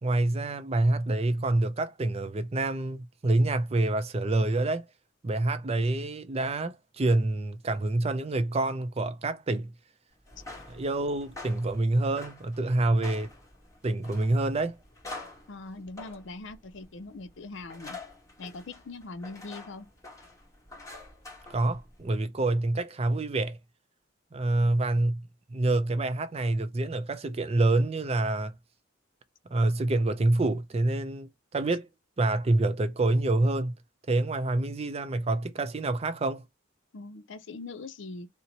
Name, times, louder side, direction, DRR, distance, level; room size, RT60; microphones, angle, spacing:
voice 1, 0.0-4.9 5.2-9.7 10.7-13.3 13.8-14.8 21.5-23.6 24.3-28.5 29.5-31.9 32.2-33.7 34.1-36.4, right 2 dB, 30° right, 0.4 m, -27 dB
sound 1, 10.2-22.1, left 2 dB, 15° left, 1.2 m, -47 dB
voice 2, 15.5-18.0 18.4-19.9 36.9-38.3, left 3 dB, 60° left, 0.5 m, -41 dB
2.8 x 2.1 x 3.8 m
head